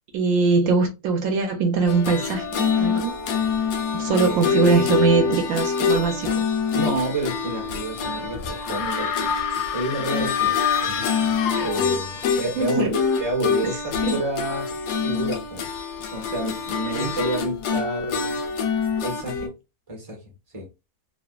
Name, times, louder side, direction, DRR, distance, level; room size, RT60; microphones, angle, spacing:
voice 1, 0.1-3.1 3.9-6.4 12.6-12.9 14.0-14.2 16.9-17.1, right 4 dB, 70° right, 1.0 m, -22 dB
sound 1, 1.9-19.5, left 5 dB, 85° left, 1.1 m, -26 dB
voice 2, 4.0-5.4 6.7-9.3 9.7-15.7 16.1-18.4 19.0-19.5 19.9-20.2 20.5-20.7, right 1 dB, 15° right, 0.7 m, -30 dB
sound 2, 8.6-12.3, left 10 dB, 65° left, 0.7 m, -27 dB
2.8 x 2.0 x 2.2 m
omnidirectional pair, 1.6 m